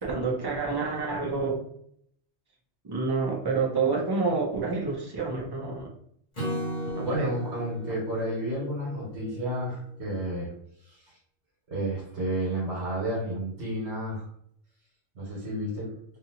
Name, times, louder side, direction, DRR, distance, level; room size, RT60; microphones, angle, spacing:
voice 1, 0.0-1.6 2.8-5.9 6.9-7.5, right 4 dB, 30° right, -1 dB, 0.4 m, -28 dB
Acoustic guitar / Strum, 6.4-9.7, equal, 45° left, 1.1 m, -36 dB
voice 2, 7.0-10.5 10.8-11.1 11.7-14.3 15.1-15.9, right 1 dB, 70° right, -6 dB, 1.4 m, -31 dB
2.8 x 2.6 x 2.7 m, 0.67 s
omnidirectional pair, 1.2 m